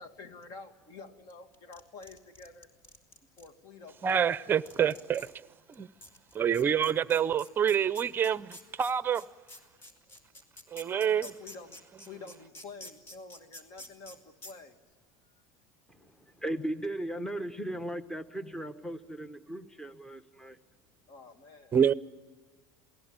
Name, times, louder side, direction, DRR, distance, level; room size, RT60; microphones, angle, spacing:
voice 1, 0.0-2.7 3.4-4.6 10.1-10.2 10.8-14.8 16.0-16.1 21.1-21.7, left 4 dB, 50° left, 2.3 m, -49 dB
sound 1, 1.3-3.5 4.2-4.3 4.7-5.3 5.7-5.8 6.0-14.2 14.4-14.5, left 1 dB, 30° left, 3.2 m, -48 dB
voice 2, 4.0-5.3 5.8-5.9 6.3-9.2 10.7-11.3 21.7-21.9, right 8 dB, 25° right, 0.7 m, -27 dB
voice 3, 16.4-20.6, right 1 dB, 5° left, 1.1 m, -37 dB
28.0 x 19.0 x 8.9 m
supercardioid pair, 125°, 8 cm